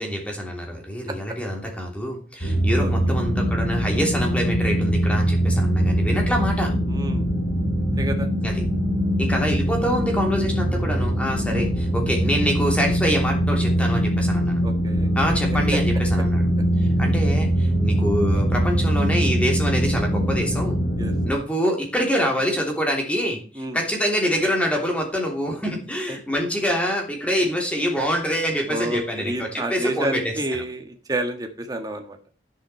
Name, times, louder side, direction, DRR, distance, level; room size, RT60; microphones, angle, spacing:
voice 1, 0.0-6.7 8.4-8.6 9.2-14.6 15.1-16.5 16.8-20.8 21.2-30.6, equal, 5° left, 1 dB, 3.1 m, -25 dB
sound 1, 2.4-21.3, equal, 65° left, 3.8 m, -22 dB
voice 2, 2.8-3.1 6.9-7.2 8.0-8.3 11.5-11.7 14.6-15.1 21.0-21.1 23.6-23.8 26.1-26.2 28.7-32.2, right 1 dB, 20° right, 5 dB, 1.5 m, -29 dB
11.0 x 10.0 x 4.4 m, 0.36 s
head